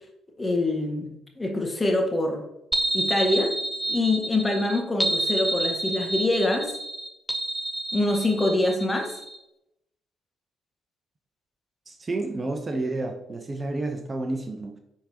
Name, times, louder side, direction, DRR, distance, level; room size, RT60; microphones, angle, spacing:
voice 1, 0.4-2.4 2.9-3.5 3.9-6.7 7.9-9.1, left 2 dB, 20° left, 2 dB, 1.8 m, -25 dB
sound 1, 2.7-9.4, right 2 dB, 5° right, 0.8 m, -29 dB
voice 2, 11.9-14.8, right 2 dB, 35° right, 5 dB, 0.9 m, -30 dB
10.0 x 3.8 x 2.9 m, 0.84 s
hypercardioid pair, 45°, 0 cm